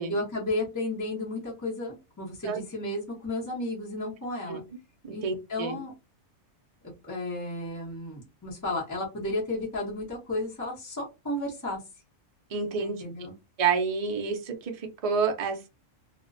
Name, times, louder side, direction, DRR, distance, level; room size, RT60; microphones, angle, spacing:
voice 1, 0.0-4.6 5.1-5.9 7.0-11.8 12.8-13.3, left 1 dB, 15° left, -5 dB, 0.7 m, -33 dB
voice 2, 5.0-5.8 12.5-13.0 13.6-15.7, right 5 dB, 75° right, 4 dB, 0.3 m, -29 dB
2.4 x 2.1 x 2.5 m, 0.25 s
omnidirectional pair, 1.4 m